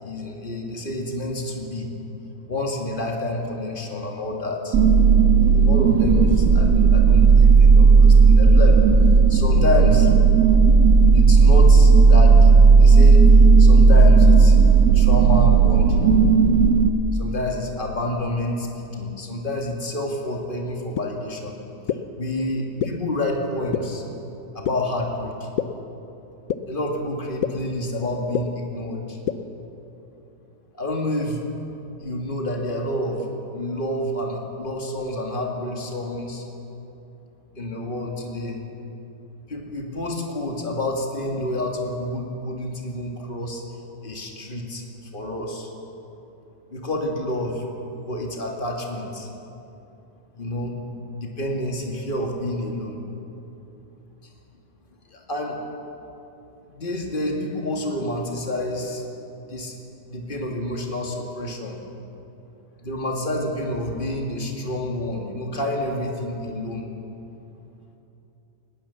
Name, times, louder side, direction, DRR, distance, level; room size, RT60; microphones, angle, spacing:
voice 1, 0.0-1.9 2.5-4.8 5.4-8.8 9.3-10.1 11.1-13.3 13.6-14.6 14.9-16.1 17.1-21.6 21.9-24.0 24.5-25.5 26.6-29.2 30.7-31.4 32.0-36.5 37.6-38.6 39.5-43.6 44.0-44.8 45.1-45.7 46.7-47.6 48.0-49.3 50.4-50.7 51.2-53.0 55.1-55.6 56.7-59.1 59.4-59.8 60.1-61.8 62.8-66.8, left 1 dB, 30° left, 1 dB, 2.4 m, -28 dB
sound 1, 4.7-16.9, right 4 dB, 65° right, 1.7 m, -13 dB
sound 2, 21.0-21.1 21.9-22.0 22.8-22.9 23.7-23.8 24.6-24.7 25.6-25.7 26.5-26.6 27.4-27.5 28.3-28.4 29.3-29.4, left 11 dB, 65° left, 1.1 m, -23 dB
19.5 x 18.5 x 7.2 m, 2.9 s
omnidirectional pair, 1.7 m